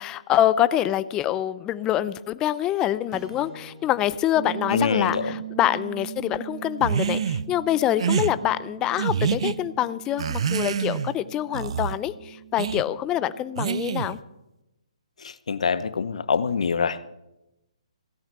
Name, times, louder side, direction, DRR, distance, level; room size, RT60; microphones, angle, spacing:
voice 1, 0.0-14.2, left 12 dB, 20° left, 15 dB, 0.5 m, -25 dB
sound 1, 3.1-7.6, right 1 dB, 15° right, 1.6 m, -50 dB
sound 2, 4.3-14.1, right 14 dB, 40° right, 1.7 m, -40 dB
voice 2, 4.7-5.4 15.2-17.1, left 5 dB, 75° left, 16 dB, 0.8 m, -25 dB
sound 3, 6.8-7.4 8.0-8.3 9.0-9.6 10.2-11.1 11.5-12.0 12.6-12.8 13.6-14.2, right 7 dB, 60° right, 0.6 m, -26 dB
16.5 x 9.1 x 6.9 m, 0.93 s
hypercardioid pair, 150°, 4 cm